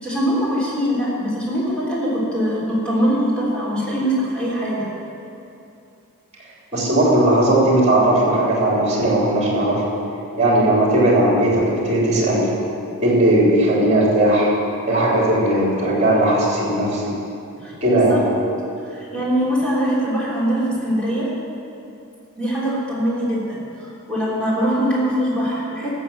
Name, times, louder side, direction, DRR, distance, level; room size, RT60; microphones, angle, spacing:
voice 1, 0.0-4.9 17.6-18.2 18.9-21.3 22.4-25.9, equal, 5° left, -8 dB, 3.2 m, -22 dB
voice 2, 6.7-9.8 10.4-12.5 13.0-14.5 14.9-17.1 17.8-18.2, right 1 dB, 30° right, -4 dB, 3.6 m, -17 dB
14.5 x 7.0 x 7.6 m, 2.7 s
head